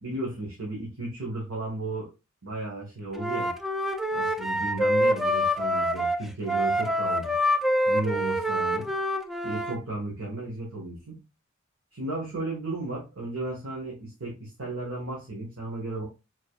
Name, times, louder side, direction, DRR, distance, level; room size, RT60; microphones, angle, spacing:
voice 1, 0.0-2.1 2.4-3.5 4.1-7.3 7.9-8.9 9.4-11.2 11.9-16.0, right 2 dB, 80° right, -3 dB, 1.6 m, -34 dB
Wind instrument woodwind instrument, 3.1-9.8, equal, ahead, 0.3 m, -26 dB
4.9 x 4.1 x 2.4 m, 0.27 s
head